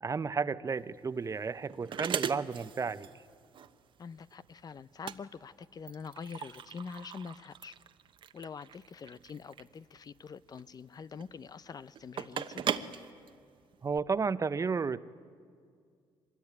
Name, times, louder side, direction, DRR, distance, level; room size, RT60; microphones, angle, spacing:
voice 1, 0.0-3.1 13.8-15.0, right 5 dB, 30° right, 15 dB, 0.8 m, -32 dB
sound 1, 0.7-14.0, right 8 dB, 55° right, 1.1 m, -40 dB
voice 2, 4.0-7.7 8.3-12.6, left 6 dB, 40° left, 16 dB, 0.7 m, -45 dB
24.5 x 21.0 x 9.7 m, 2.1 s
supercardioid pair, 80°, 10 cm